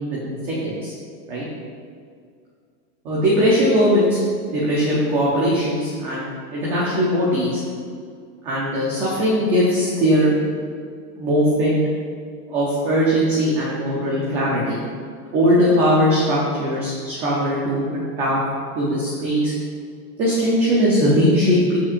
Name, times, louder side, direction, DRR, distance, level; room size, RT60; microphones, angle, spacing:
voice 1, 3.0-4.2 4.5-7.6 8.4-10.4 11.2-11.8 12.5-14.8 15.3-18.4 18.7-19.5 20.2-21.8, equal, 15° right, -6 dB, 0.6 m, -20 dB
15.5 x 5.8 x 2.5 m, 2.2 s
supercardioid pair, 165°, 49 cm